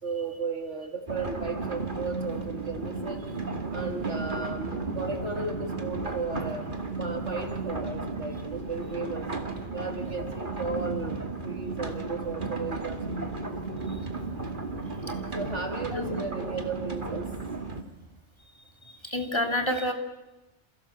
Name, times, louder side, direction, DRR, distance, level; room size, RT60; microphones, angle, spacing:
voice 1, 0.0-3.3 3.7-6.7 7.0-9.3 9.7-13.6 15.3-17.3 19.7-19.8, right 4 dB, 75° right, 3 dB, 4.0 m, -35 dB
sound 1, 1.1-17.8, right 3 dB, 45° right, 2.5 m, -34 dB
voice 2, 15.9-16.2 19.1-19.9, left 1 dB, 25° left, 3 dB, 3.2 m, -28 dB
29.0 x 28.0 x 7.4 m, 1.0 s
omnidirectional pair, 1.2 m